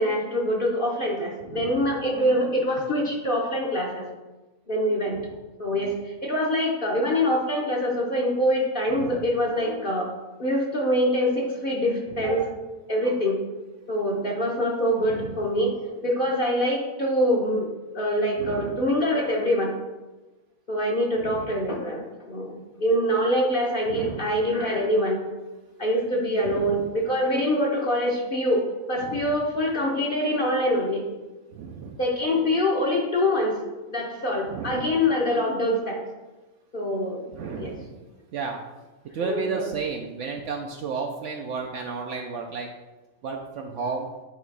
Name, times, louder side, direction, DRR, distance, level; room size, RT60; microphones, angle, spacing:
voice 1, 0.0-4.0 4.7-5.2 5.6-10.1 10.4-12.5 12.9-13.4 13.9-19.8 20.7-25.2 25.8-31.0 32.0-33.6 33.9-36.0 36.7-37.2 37.5-37.7 39.2-39.6, equal, 45° left, -2 dB, 1.0 m, -24 dB
voice 2, 1.4-1.9 5.2-5.3 8.9-9.3 12.1-12.4 15.0-15.4 18.4-18.8 21.2-21.6 23.9-24.4 26.4-26.9 29.0-29.3 31.5-32.0 34.4-34.9 37.3-38.0 38.3-38.6 39.1-42.7 43.2-44.1, right 5 dB, 65° right, 1 dB, 0.9 m, -33 dB
9.0 x 3.0 x 4.7 m, 1.2 s
omnidirectional pair, 1.5 m